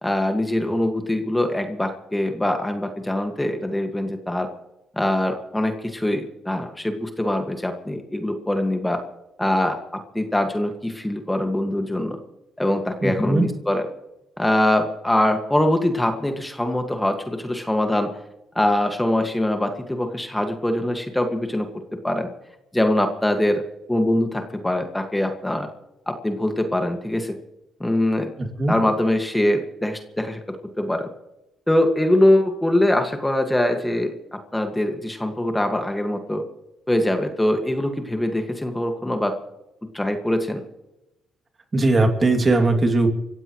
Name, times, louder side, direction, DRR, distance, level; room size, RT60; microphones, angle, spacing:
voice 1, 0.0-4.5 5.0-9.0 9.4-12.2 12.6-13.8 14.4-18.1 18.6-22.3 22.7-23.6 23.9-25.7 26.1-27.4 27.8-28.3 28.7-31.1 31.7-36.4 36.9-39.3 39.9-40.6, left 1 dB, 10° left, 5 dB, 1.9 m, -23 dB
voice 2, 13.0-13.5 28.4-28.8 41.7-43.1, right 2 dB, 30° right, 4 dB, 2.7 m, -19 dB
24.5 x 16.0 x 3.2 m, 0.92 s
cardioid pair, 90°, 0 cm